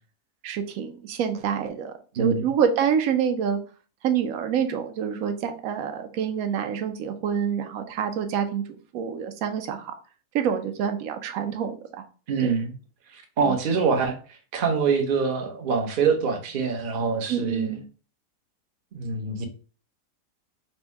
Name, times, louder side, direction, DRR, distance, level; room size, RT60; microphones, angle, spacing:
voice 1, 0.4-3.6 4.0-8.6 8.9-9.9 10.3-11.8 12.4-12.5 13.5-13.6 17.3-17.8, right 8 dB, 70° right, 1.0 m, -27 dB
voice 2, 2.2-2.5 12.3-12.7 13.1-17.7 18.9-19.4, right 5 dB, 45° right, 0.7 m, -25 dB
4.3 x 2.2 x 4.6 m
omnidirectional pair, 1.7 m